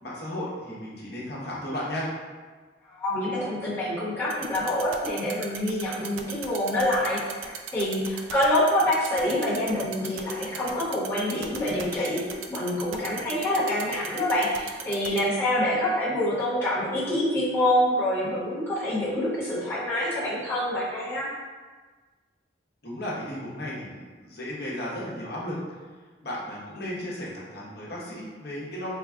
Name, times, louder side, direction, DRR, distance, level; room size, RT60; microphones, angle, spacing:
voice 1, 0.0-2.1 22.8-25.8 26.2-28.9, left 1 dB, 55° left, -5 dB, 0.9 m, -34 dB
voice 2, 2.9-12.2 12.5-21.3, left 1 dB, 15° left, -11 dB, 1.0 m, -26 dB
sound 1, 4.3-15.2, right 9 dB, 85° right, 0.3 m, -36 dB
3.5 x 2.3 x 3.5 m, 1.4 s
head